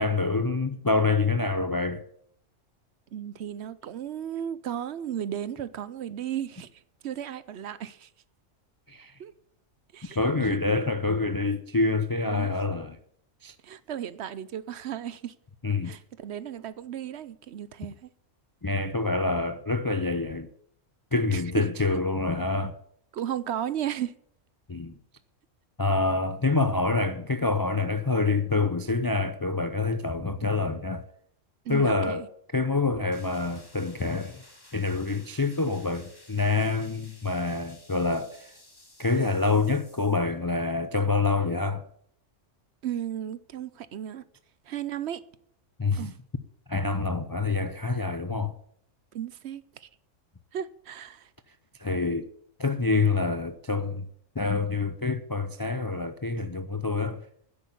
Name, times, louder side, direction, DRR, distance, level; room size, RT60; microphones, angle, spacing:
voice 1, 0.0-2.0 8.9-9.1 10.2-13.0 13.4-13.5 15.6-16.0 18.6-20.5 21.1-22.8 24.7-25.0 25.8-31.1 31.7-32.2 32.5-34.4 34.7-38.5 39.0-41.8 45.8-46.1 46.7-48.5 51.8-52.3 52.6-54.1 54.4-57.2, left 3 dB, 35° left, 0.3 m, -26 dB
voice 2, 3.1-8.1 9.2-9.3 9.9-10.6 12.3-12.5 13.6-15.3 15.8-18.1 21.3-21.7 23.1-24.1 31.6-32.3 42.8-44.2 44.6-45.2 46.0-46.1 49.1-49.9 50.5-51.3, right 10 dB, 65° right, 0.9 m, -35 dB
sound 1, 33.1-40.3, left 1 dB, 20° left, 1.6 m, -54 dB
10.0 x 8.3 x 8.5 m
omnidirectional pair, 1.3 m